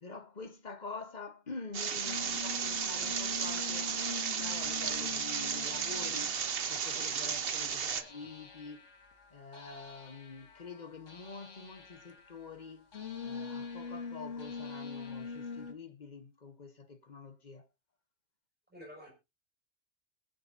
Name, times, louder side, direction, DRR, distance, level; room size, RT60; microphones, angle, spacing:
voice 1, 0.0-3.9 4.4-7.8 8.1-8.9 9.3-12.9 13.2-17.7, left 4 dB, 35° left, 1.0 m, -46 dB
sound 1, 1.7-8.0, right 7 dB, 50° right, 1.0 m, -34 dB
sound 2, 2.0-15.7, left 5 dB, 65° left, 1.9 m, -45 dB
voice 2, 18.7-19.1, left 1 dB, 5° right, 6.3 m, -49 dB
21.5 x 8.0 x 2.7 m
omnidirectional pair, 1.4 m